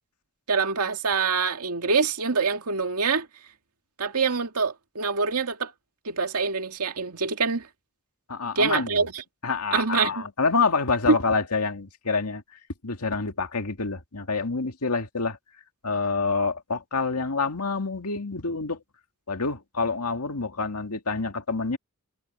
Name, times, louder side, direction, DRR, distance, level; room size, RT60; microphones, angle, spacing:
voice 1, 0.5-3.3 4.0-5.7 6.0-7.7 8.6-9.2 9.7-10.3, right 5 dB, 80° right, 2.1 m, -25 dB
voice 2, 8.3-9.0 9.4-12.4 12.8-15.4 15.8-18.8 19.3-21.8, left 4 dB, 85° left, 2.1 m, -27 dB
head